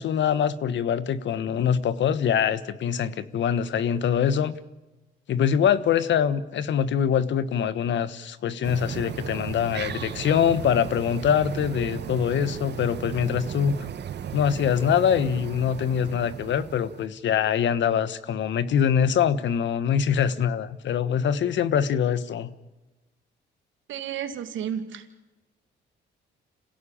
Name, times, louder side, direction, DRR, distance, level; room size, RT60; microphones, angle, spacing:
voice 1, 0.0-4.5 5.3-13.9 14.3-22.5, left 8 dB, 65° left, 15 dB, 1.3 m, -24 dB
sound 1, 8.6-17.1, right 9 dB, 60° right, 1.4 m, -35 dB
voice 2, 23.9-25.0, right 9 dB, 75° right, 9 dB, 2.3 m, -32 dB
27.0 x 16.5 x 8.8 m, 1.1 s
cardioid pair, 90°, 20 cm